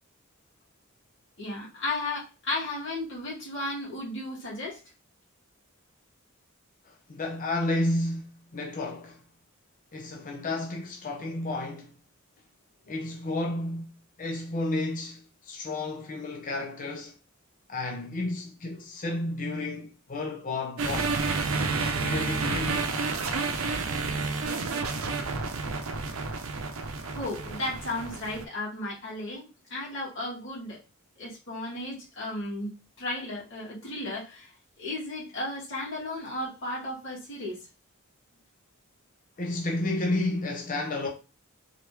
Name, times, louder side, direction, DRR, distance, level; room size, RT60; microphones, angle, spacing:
voice 1, 1.4-4.8 27.0-30.8 31.2-32.7 33.0-34.5 34.8-37.6, left 2 dB, 65° left, 2.4 m, -34 dB
voice 2, 7.1-9.2 9.9-11.9 12.9-13.9 14.2-15.2 15.5-17.1 17.7-21.2 21.9-22.9 39.4-41.1, left 2 dB, 40° left, 0.7 m, -31 dB
sound 1, 20.8-28.4, right 4 dB, 80° right, 0.6 m, -30 dB
3.9 x 3.0 x 3.4 m
head